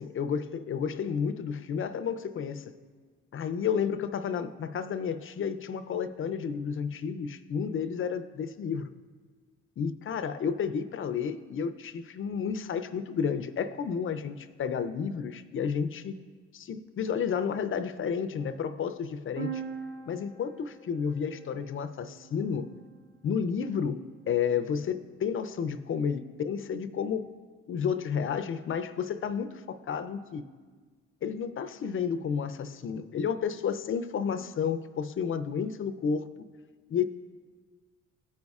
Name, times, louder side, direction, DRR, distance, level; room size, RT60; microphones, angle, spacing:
voice 1, 0.0-2.7 3.3-8.9 9.8-16.1 16.5-19.6 20.1-22.7 23.2-24.0 24.3-27.3 27.7-30.4 31.2-36.3 36.9-37.0, left 7 dB, 45° left, 11 dB, 0.5 m, -31 dB
sound 1, 19.4-23.1, right 7 dB, 85° right, 2.1 m, -42 dB
15.0 x 5.3 x 2.4 m, 1.5 s
cardioid pair, 90°, 30 cm